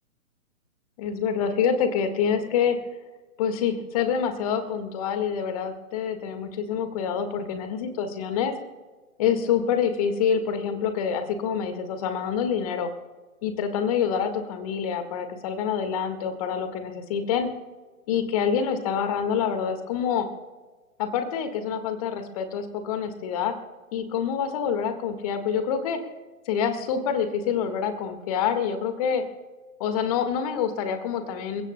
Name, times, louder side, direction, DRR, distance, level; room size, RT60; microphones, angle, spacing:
voice 1, 1.0-2.8 3.4-8.5 9.2-12.9 13.4-17.5 18.1-20.3 21.0-23.5 23.9-26.0 26.5-29.2 29.8-31.6, left 7 dB, 25° left, 8 dB, 1.7 m, -26 dB
29.0 x 15.5 x 2.2 m, 1.3 s
figure-of-eight pair, 130°, 42 cm